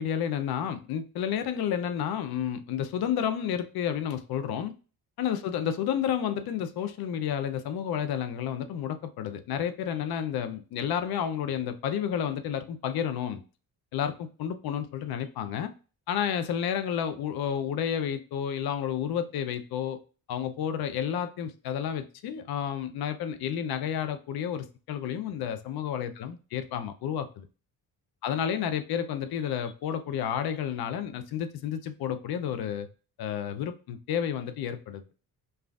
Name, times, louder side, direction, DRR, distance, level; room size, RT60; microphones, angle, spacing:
voice 1, 0.0-4.7 5.2-13.4 13.9-15.7 16.1-20.0 20.3-27.5 28.2-32.9 33.2-35.0, left 9 dB, 80° left, 0.6 m, -31 dB
5.5 x 2.5 x 2.4 m
cardioid pair, 100°, 37 cm